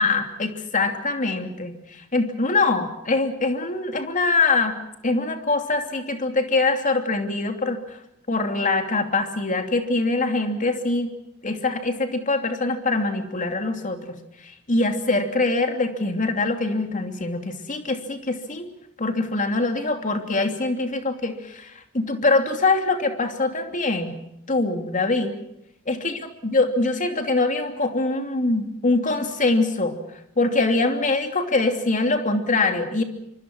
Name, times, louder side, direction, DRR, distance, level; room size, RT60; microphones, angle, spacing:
voice 1, 0.0-4.8 5.0-8.0 8.3-11.1 11.4-14.2 14.7-18.7 19.0-24.2 24.5-25.3 25.9-30.0 30.4-33.0, left 3 dB, 35° left, 5 dB, 2.9 m, -23 dB
25.0 x 25.0 x 6.2 m, 0.81 s
head